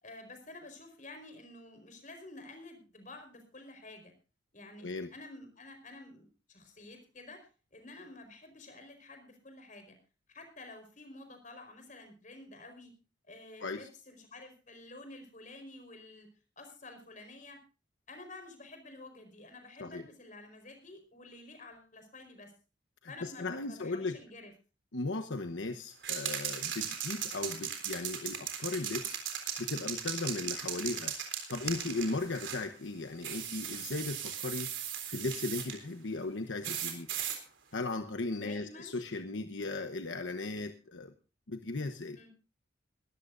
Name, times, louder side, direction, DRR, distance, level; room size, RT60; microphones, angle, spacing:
voice 1, 0.0-4.1 4.5-10.0 10.3-12.9 13.3-16.3 16.6-17.6 18.1-22.5 23.1-24.5 38.3-39.0 42.1-42.3, left 2 dB, 40° left, 7 dB, 4.6 m, -50 dB
voice 2, 4.8-5.1 13.6-13.9 19.8-20.0 23.0-24.2 24.9-34.7 35.1-37.1 37.7-41.1 41.5-42.2, left 3 dB, 75° left, 7 dB, 1.1 m, -37 dB
sound 1, 26.0-32.7 33.2-35.8 36.6-37.4, right 9 dB, 70° right, 3.7 m, -37 dB
22.0 x 13.5 x 2.6 m, 0.33 s
head